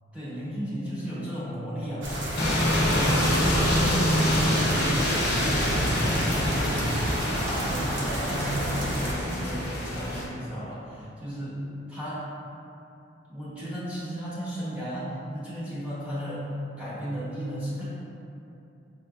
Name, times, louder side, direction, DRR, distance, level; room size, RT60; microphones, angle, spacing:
voice 1, 0.1-2.1 2.3-3.1 3.7-4.9 5.2-6.9 7.2-12.3 13.3-16.5 16.8-17.8, equal, 5° right, -11 dB, 0.9 m, -34 dB
sound 1, 2.0-9.1, equal, 75° right, 0.7 m, -30 dB
sound 2, 2.4-10.2, equal, 55° left, 0.8 m, -26 dB
5.6 x 2.5 x 2.3 m, 2.8 s
head